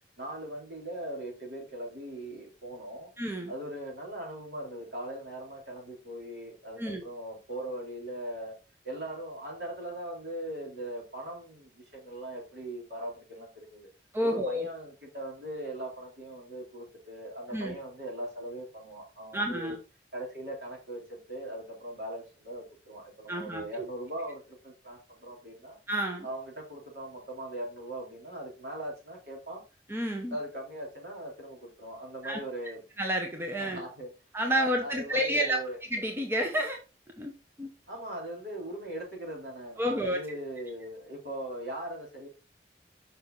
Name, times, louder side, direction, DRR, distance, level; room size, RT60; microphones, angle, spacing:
voice 1, 0.2-3.1 3.5-8.5 8.8-13.9 14.2-19.8 20.1-25.8 26.2-29.6 30.3-32.8 33.6-34.1 34.5-35.8 37.9-42.3, right 1 dB, 70° right, -2 dB, 3.6 m, -40 dB
voice 2, 3.2-3.5 6.8-7.0 14.1-14.7 17.5-17.8 19.3-19.8 23.3-23.6 25.9-26.3 29.9-30.4 32.2-32.4 33.0-33.8 34.3-35.6 35.9-36.8 37.2-37.3 37.6-37.7 39.8-40.2, equal, 15° right, 2 dB, 1.0 m, -30 dB
6.5 x 5.5 x 3.9 m, 0.30 s
head